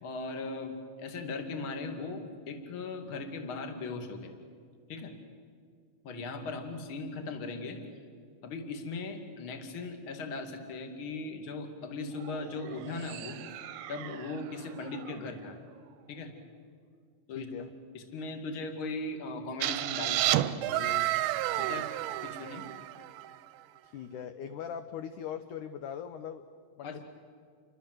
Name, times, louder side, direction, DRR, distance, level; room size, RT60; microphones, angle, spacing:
voice 1, 0.0-4.3 4.9-5.1 6.0-7.8 8.4-15.6 16.1-16.3 17.3-17.5 17.9-21.1 21.5-21.9 22.2-22.6 26.8-27.0, left 3 dB, 35° left, 5 dB, 2.6 m, -39 dB
sound 1, 12.1-16.5, right 10 dB, 70° right, 2.3 m, -47 dB
voice 2, 17.3-17.7 23.8-26.4 26.8-27.0, left 8 dB, 80° left, 9 dB, 1.8 m, -40 dB
sound 2, 19.6-23.3, right 15 dB, 90° right, 3.0 m, -30 dB
29.5 x 24.0 x 7.9 m, 2.1 s
omnidirectional pair, 4.8 m